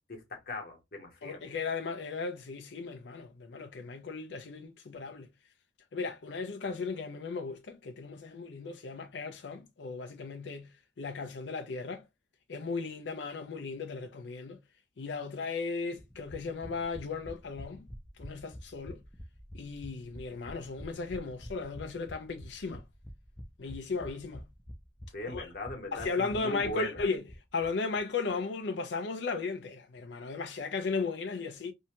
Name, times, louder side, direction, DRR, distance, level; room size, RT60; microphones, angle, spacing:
voice 1, 0.1-1.4 25.1-27.1, left 2 dB, 50° left, 1.0 m, -39 dB
voice 2, 1.2-5.3 5.9-12.0 12.5-14.6 15.0-17.9 18.2-19.0 19.5-22.9 23.6-24.5 25.3-25.5 25.9-31.7, left 4 dB, 70° left, 0.5 m, -36 dB
sound 1, 16.0-27.7 28.0-28.1 28.3-28.4, equal, 5° left, 0.4 m, -47 dB
2.7 x 2.2 x 2.8 m
head